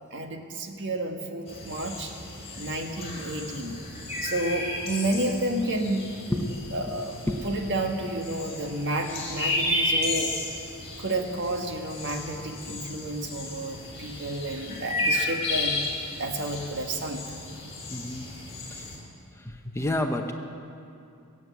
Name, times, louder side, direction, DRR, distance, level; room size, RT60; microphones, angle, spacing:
voice 1, 0.1-2.1 2.5-3.8 4.2-6.1 6.7-7.1 7.4-10.3 11.0-15.8 16.2-17.3, right 1 dB, 55° right, 4 dB, 1.5 m, -31 dB
sound 1, 1.5-19.0, left 2 dB, 30° left, 4.0 m, -33 dB
voice 2, 6.3-6.6 6.9-7.6 17.9-18.3 18.7-18.9 19.3-20.3, left 1 dB, 10° left, 4 dB, 0.8 m, -30 dB
21.0 x 8.2 x 8.3 m, 2.5 s
head